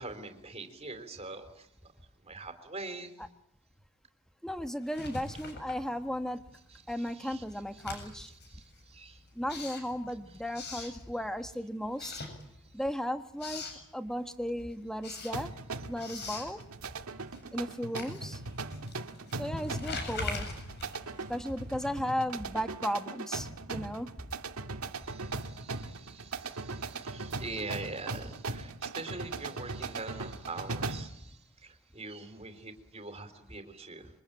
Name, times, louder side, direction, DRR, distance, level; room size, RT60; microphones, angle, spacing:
voice 1, 0.0-1.7 2.2-3.1 6.7-7.4 8.3-9.2 10.8-10.9 13.7-13.8 25.0-34.1, right 3 dB, 30° right, 7 dB, 3.8 m, -44 dB
voice 2, 4.4-6.4 6.9-8.3 9.3-12.2 12.7-13.6 13.9-15.5 15.9-16.6 17.5-18.4 19.4-20.5 21.3-24.1, equal, 5° left, 8 dB, 1.4 m, -35 dB
Writing, 4.8-6.4 6.7-11.5 11.9-12.9 13.2-13.8 14.3-21.9, left 3 dB, 50° left, 7.7 m, -43 dB
sound 1, 15.3-31.2, right 3 dB, 85° right, 1.9 m, -39 dB
27.0 x 24.0 x 8.9 m, 0.80 s
head